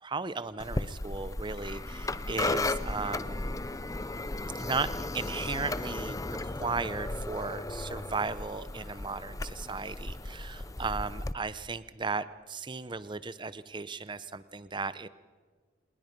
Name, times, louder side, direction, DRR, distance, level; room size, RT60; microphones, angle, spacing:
voice 1, 0.0-3.5 4.5-6.2 6.4-15.1, right 4 dB, 25° right, 15 dB, 0.7 m, -36 dB
sound 1, 0.6-11.3, left 2 dB, 15° left, 0.6 m, -35 dB
28.5 x 20.5 x 5.3 m, 1.5 s
head